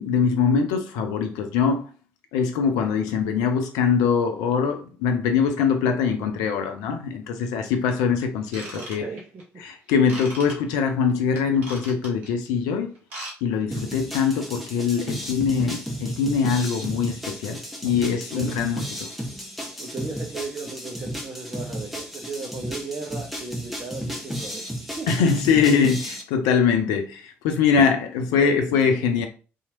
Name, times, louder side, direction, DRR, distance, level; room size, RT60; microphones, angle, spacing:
voice 1, 0.0-1.9 2.3-9.0 9.6-12.9 13.4-19.1 25.1-29.3, left 6 dB, 70° left, 0.4 m, -23 dB
Ratchet pawl / Tools, 8.5-9.4 10.1-10.5 11.3-12.3 12.9-13.3 13.6-13.8 14.3-14.4, right 1 dB, 75° right, 0.8 m, -37 dB
voice 2, 8.7-9.4 17.8-17.9 18.3-18.6 19.8-25.1 28.3-29.1, right 3 dB, 35° right, 0.7 m, -36 dB
sound 1, 13.7-26.2, equal, ahead, 0.9 m, -33 dB
2.8 x 2.4 x 2.8 m
figure-of-eight pair, 40°, 7 cm